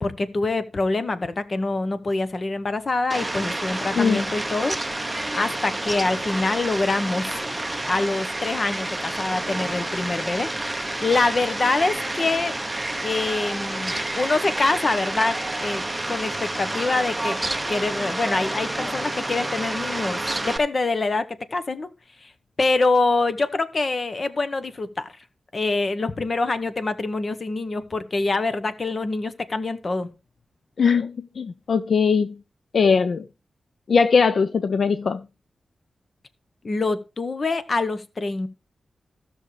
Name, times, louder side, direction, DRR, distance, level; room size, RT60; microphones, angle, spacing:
voice 1, 0.0-7.4 7.9-12.6 13.0-17.4 17.7-21.3 21.5-21.9 22.2-22.3 22.6-25.1 25.5-30.1 36.6-38.5, left 3 dB, 40° left, 1.0 m, -25 dB
Fowl, 3.1-20.6, right 1 dB, 10° right, 0.8 m, -29 dB
voice 2, 30.8-32.4 32.7-33.3 33.9-35.2, left 5 dB, 65° left, 0.5 m, -20 dB
15.5 x 6.3 x 3.2 m
wide cardioid pair, 140°, 0 cm